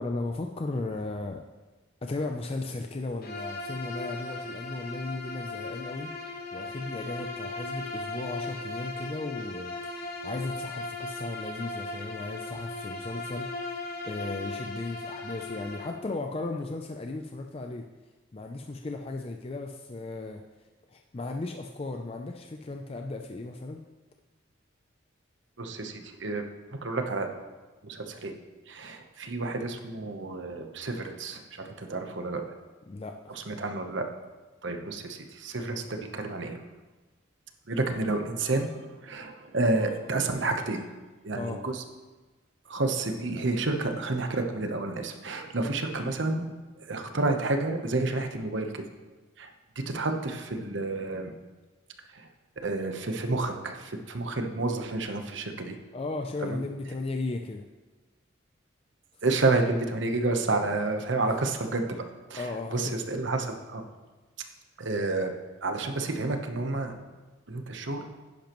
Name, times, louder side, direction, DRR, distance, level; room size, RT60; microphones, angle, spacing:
voice 1, 0.0-1.4 2.0-6.1 6.5-13.8 14.0-17.9 18.3-20.4 20.9-23.8 32.9-33.3 41.3-41.6 55.9-57.7 62.4-62.9, left 2 dB, 30° left, 4 dB, 0.4 m, -36 dB
Bowed string instrument, 3.2-16.0, left 2 dB, 50° left, 1.0 m, -37 dB
voice 2, 25.6-26.5 26.8-27.3 27.8-28.3 28.7-32.4 33.3-34.1 34.6-36.6 37.7-38.8 39.0-40.8 41.2-41.8 42.7-46.5 46.8-48.8 49.4-51.3 52.1-52.3 52.6-55.8 56.4-56.6 59.2-61.8 62.3-62.5 62.7-63.8 64.8-65.3 65.6-66.9 67.5-68.0, right 2 dB, 65° right, 5 dB, 1.0 m, -30 dB
10.5 x 10.0 x 3.1 m, 1.3 s
head